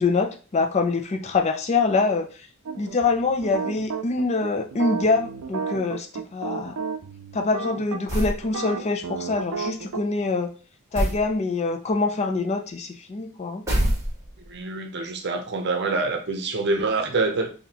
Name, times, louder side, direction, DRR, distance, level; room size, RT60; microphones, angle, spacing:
voice 1, 0.0-2.3 2.8-6.1 6.3-6.8 7.3-10.5 10.9-13.7, left 3 dB, 30° left, 0.4 m, -24 dB
sound 1, 2.7-10.0, right 5 dB, 90° right, 0.5 m, -32 dB
sound 2, 8.1-8.4 10.9-11.3 13.7-14.5, equal, 15° right, 1.2 m, -24 dB
voice 2, 14.5-17.5, right 3 dB, 50° right, 0.7 m, -26 dB
4.0 x 2.8 x 2.8 m
head